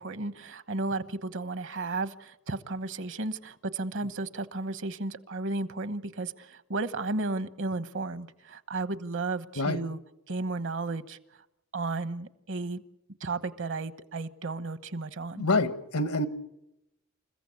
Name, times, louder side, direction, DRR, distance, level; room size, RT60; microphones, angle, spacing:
voice 1, 0.0-10.0 10.3-11.2 11.7-12.8 13.2-15.5, right 3 dB, 60° right, 1.1 m, -33 dB
voice 2, 15.3-16.3, left 2 dB, 85° left, 1.5 m, -26 dB
28.5 x 15.0 x 8.5 m
head